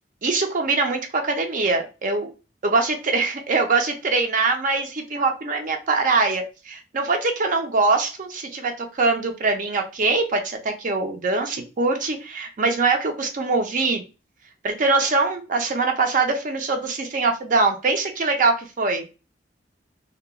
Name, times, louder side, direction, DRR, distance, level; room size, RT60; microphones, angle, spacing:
voice 1, 0.2-2.3 2.6-14.0 14.6-19.1, right 3 dB, 45° right, 5 dB, 0.5 m, -23 dB
2.9 x 2.2 x 2.2 m, 0.31 s
head